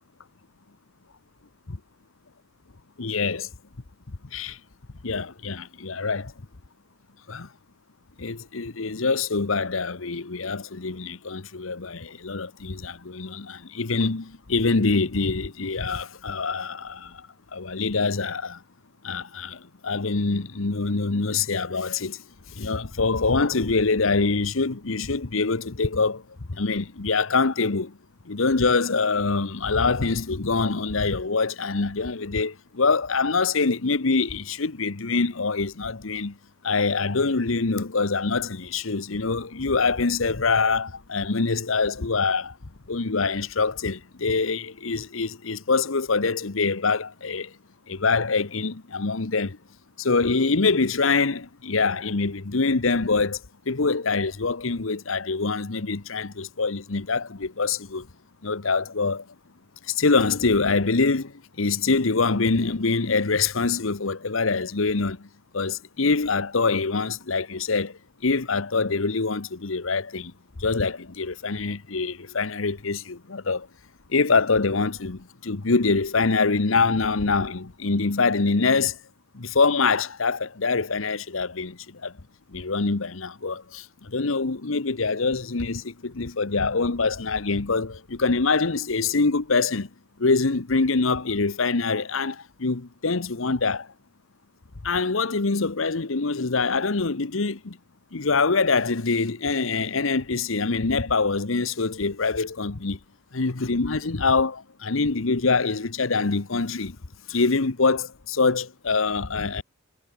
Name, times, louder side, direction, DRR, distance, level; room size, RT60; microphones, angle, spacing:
voice 1, 3.0-3.5 4.3-4.6 5.0-6.3 7.3-7.5 8.2-17.2 17.5-18.6 19.0-22.2 22.6-26.2 26.5-27.9 28.3-36.3 36.6-42.5 42.9-47.5 47.9-49.6 50.0-53.4 53.7-58.1 58.4-59.2 59.9-61.3 61.6-65.2 65.5-67.9 68.2-70.3 70.6-73.7 74.1-79.0 79.3-82.1 82.5-83.8 84.1-89.9 90.2-93.9 94.8-97.8 98.1-103.0 103.3-106.9 107.3-109.6, left 4 dB, 80° left, 1.1 m, -24 dB
head